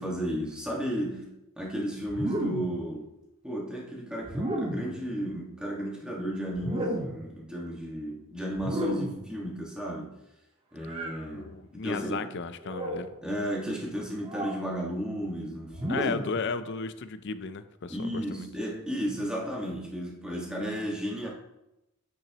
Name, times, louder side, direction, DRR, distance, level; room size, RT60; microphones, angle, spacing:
voice 1, 0.0-3.1 3.4-10.1 10.7-12.3 13.2-16.1 17.9-21.3, equal, 5° right, -3 dB, 1.6 m, -34 dB
sound 1, 2.1-2.8 4.2-5.0 6.5-7.3 8.5-9.3 10.8-11.2 12.6-13.1 14.2-14.6 15.7-16.4, equal, 25° right, 1.0 m, -32 dB
voice 2, 11.3-13.2 15.9-18.5, left 4 dB, 55° left, 12 dB, 0.5 m, -34 dB
8.9 x 6.0 x 2.9 m, 0.90 s
head